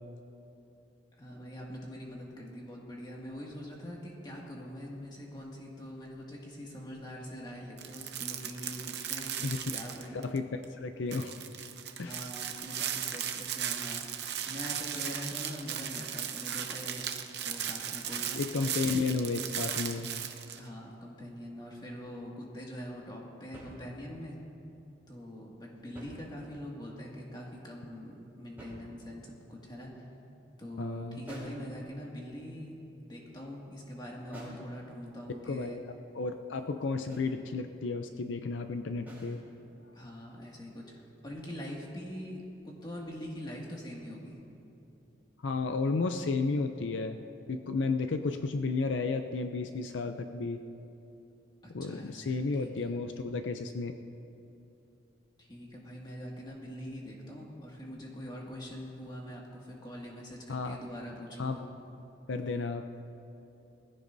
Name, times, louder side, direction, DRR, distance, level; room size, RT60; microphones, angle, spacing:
voice 1, 1.2-10.3 12.0-14.0 14.5-17.0 17.4-18.4 20.6-24.4 25.1-30.1 30.6-35.8 39.9-44.4 51.6-53.0 55.4-61.6, equal, 20° left, -3 dB, 2.0 m, -43 dB
sound 1, 7.8-10.4 10.6-10.7 11.1-20.6, right 9 dB, 60° right, 0.8 m, -37 dB
voice 2, 10.8-11.3 12.0-12.2 18.4-20.1 30.8-31.2 35.5-39.4 45.4-47.2 47.5-50.6 51.7-53.9 60.5-60.8 61.4-61.6 62.3-62.9, left 4 dB, 80° left, 7 dB, 0.5 m, -32 dB
sound 2, 23.5-24.3 25.8-26.8 28.6-29.4 31.3-31.7 34.3-34.7 37.1-37.4 39.1-39.4, equal, 10° right, 3.8 m, -47 dB
21.0 x 15.0 x 2.7 m, 2.8 s
head